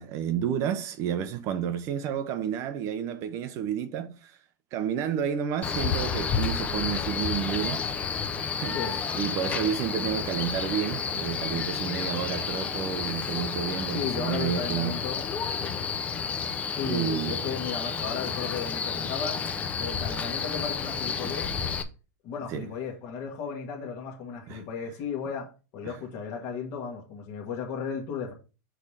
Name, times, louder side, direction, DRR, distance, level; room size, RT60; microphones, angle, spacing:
voice 1, 0.0-4.4 4.7-14.9 16.4-17.5 22.5-22.7 24.5-24.6 25.8-26.0, right 8 dB, 30° right, 0.6 m, -31 dB
Male speech man speaking, 5.6-21.8, left 6 dB, 15° left, 0.5 m, -31 dB
voice 2, 13.9-15.2 15.6-15.9 16.8-19.4 19.8-21.5 22.2-28.3, left 6 dB, 35° left, 1.4 m, -35 dB
6.2 x 3.4 x 5.6 m
supercardioid pair, 165°, 10 cm